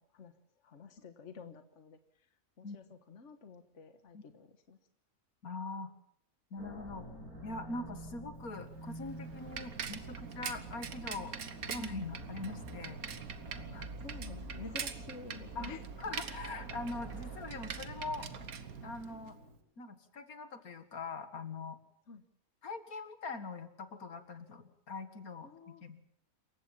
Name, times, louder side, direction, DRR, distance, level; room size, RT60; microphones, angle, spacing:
voice 1, 0.6-2.3 2.6-4.8 11.6-11.7 13.6-15.9 22.1-22.2 25.4-25.9, left 4 dB, 55° left, 8 dB, 1.6 m, -50 dB
voice 2, 5.4-5.9 6.5-7.1 7.4-11.3 11.7-13.0 13.7-13.8 15.6-18.3 18.8-19.4 19.8-21.8 22.6-26.0, left 3 dB, 70° left, 9 dB, 2.3 m, -42 dB
sound 1, 6.6-19.6, right 1 dB, 90° right, 7.3 m, -48 dB
Bicycle, 8.5-19.4, right 7 dB, 75° right, 1.7 m, -44 dB
27.5 x 15.0 x 7.3 m, 0.68 s
omnidirectional pair, 1.6 m